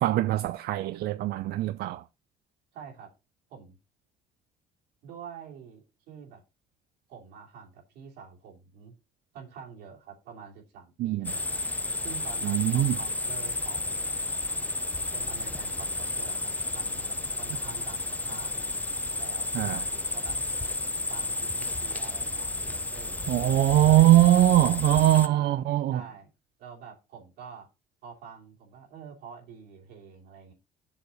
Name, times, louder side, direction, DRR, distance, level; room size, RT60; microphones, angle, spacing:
voice 1, 0.0-2.0 11.0-11.3 12.4-13.0 19.5-19.8 23.3-26.0, right 14 dB, 70° right, 0.5 m, -22 dB
voice 2, 2.7-3.1 3.5-3.8 5.0-6.4 7.1-8.9 9.3-11.6 12.0-14.3 15.1-18.6 19.2-20.4 21.1-23.3 23.9-24.5 25.2-25.6 25.9-26.3 26.6-27.7 28.0-30.5, right 6 dB, 90° right, 2.8 m, -46 dB
sound 1, 11.2-25.3, left 2 dB, 10° left, 0.5 m, -32 dB
7.0 x 6.5 x 4.0 m
cardioid pair, 110°, 17 cm